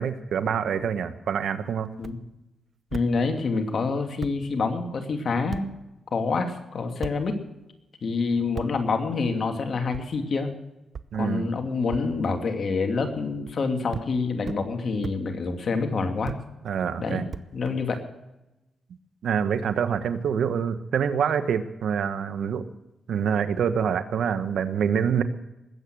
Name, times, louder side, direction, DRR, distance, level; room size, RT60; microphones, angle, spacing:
voice 1, 0.0-1.9 11.1-11.5 16.6-17.2 19.2-22.7 23.1-25.2, right 7 dB, 80° right, 11 dB, 1.2 m, -26 dB
sound 1, 2.0-2.2 2.9-3.1 3.8-3.9 4.2-4.4 5.5-5.6 7.0-7.2 8.6-8.7 9.9-10.1 10.9-11.1 11.9-12.0 13.2-13.6 13.9-14.1 14.5-14.6 15.0-15.2 16.2-16.4 17.3-18.0, right 6 dB, 55° right, 0.8 m, -35 dB
voice 2, 2.9-5.6 6.1-7.3 8.0-10.5 11.1-16.3 17.0-17.2 17.5-18.0, left 4 dB, 60° left, 5 dB, 2.5 m, -27 dB
20.5 x 8.7 x 6.2 m, 0.96 s
cardioid pair, 70°, 0 cm